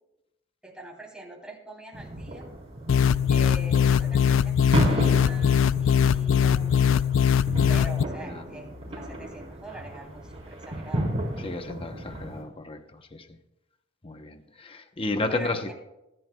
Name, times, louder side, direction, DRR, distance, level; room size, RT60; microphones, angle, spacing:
voice 1, 0.6-2.5 3.3-7.0 7.7-11.1 15.3-15.7, right 1 dB, 5° right, -2 dB, 3.1 m, -43 dB
sound 1, 1.9-12.4, right 1 dB, 35° right, 3.8 m, -33 dB
sound 2, 2.9-8.0, left 8 dB, 75° left, 0.3 m, -21 dB
voice 2, 11.4-12.8 13.1-13.3 14.0-15.7, left 2 dB, 30° left, 7 dB, 0.8 m, -32 dB
24.0 x 11.0 x 2.3 m, 0.90 s
head